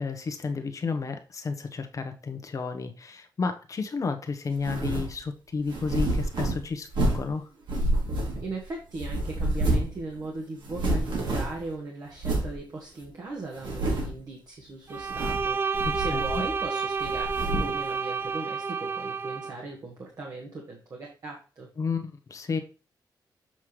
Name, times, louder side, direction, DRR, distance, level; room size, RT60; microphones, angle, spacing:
voice 1, 0.0-7.5 15.8-16.4 21.8-22.6, left 4 dB, 45° left, 1.1 m, -32 dB
sound 1, 4.6-5.1 5.7-7.3 7.7-8.6 9.0-10.0 10.2-10.3 10.6-11.7 12.2-12.5 13.0-13.1 13.6-14.2 15.0-15.5 15.7-16.6 17.0-17.8, right 1 dB, 80° right, 2.9 m, -28 dB
voice 2, 8.4-21.7, right 3 dB, 50° right, 1.6 m, -38 dB
Bowed string instrument, 14.9-19.6, right 5 dB, 30° right, 0.4 m, -30 dB
7.4 x 5.7 x 3.2 m
wide cardioid pair, 120°, 8 cm